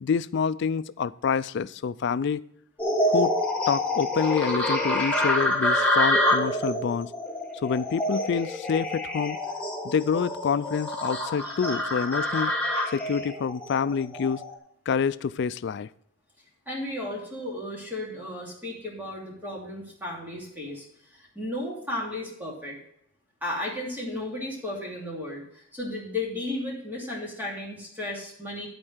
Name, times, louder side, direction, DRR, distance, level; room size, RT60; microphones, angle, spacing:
voice 1, 0.0-2.4 3.1-3.4 3.7-7.1 7.6-9.4 9.8-12.5 12.9-14.4 14.9-15.9, left 6 dB, 55° left, 16 dB, 0.3 m, -27 dB
sound 1, 2.8-14.5, left 1 dB, 5° left, 1.5 m, -27 dB
voice 2, 11.4-11.8 16.7-22.8 23.4-28.7, left 1 dB, 10° right, -3 dB, 2.8 m, -34 dB
12.5 x 4.4 x 6.4 m, 0.73 s
head